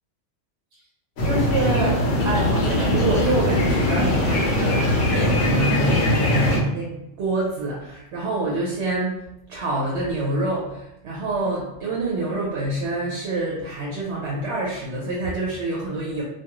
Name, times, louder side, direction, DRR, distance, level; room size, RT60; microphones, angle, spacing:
sound 1, 1.2-6.6, left 1 dB, 65° left, 0.9 m, -21 dB
voice 1, 1.2-6.9 7.2-9.1 9.5-16.2, right 2 dB, 70° right, -5 dB, 0.9 m, -26 dB
2.4 x 2.3 x 2.9 m, 0.85 s
omnidirectional pair, 1.2 m